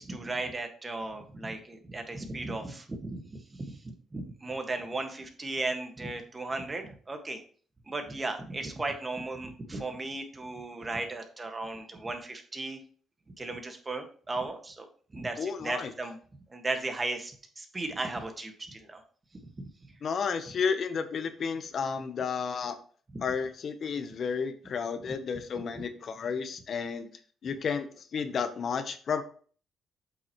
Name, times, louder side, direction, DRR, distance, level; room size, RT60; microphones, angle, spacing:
voice 1, 0.0-7.4 7.9-12.8 13.4-14.8 15.1-16.2 16.5-19.0 19.4-19.7 23.1-23.2 25.7-25.8, right 2 dB, 25° right, 5 dB, 1.6 m, -36 dB
voice 2, 15.4-15.9 20.0-22.8 23.2-27.1 27.4-29.2, left 6 dB, 55° left, 10 dB, 0.9 m, -32 dB
7.9 x 6.0 x 3.0 m, 0.44 s
cardioid pair, 90°, 0 cm